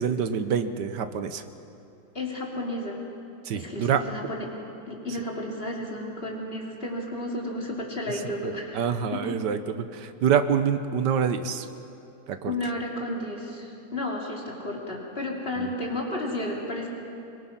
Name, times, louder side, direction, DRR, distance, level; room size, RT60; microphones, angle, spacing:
voice 1, 0.0-1.4 3.4-4.0 8.4-11.7 12.3-12.5 15.6-15.7, right 7 dB, 85° right, 10 dB, 1.6 m, -26 dB
voice 2, 2.1-3.0 3.5-4.5 4.9-8.8 9.1-9.4 12.4-16.9, left 1 dB, 35° left, -2 dB, 3.2 m, -32 dB
24.0 x 21.5 x 5.9 m, 2.7 s
omnidirectional pair, 1.8 m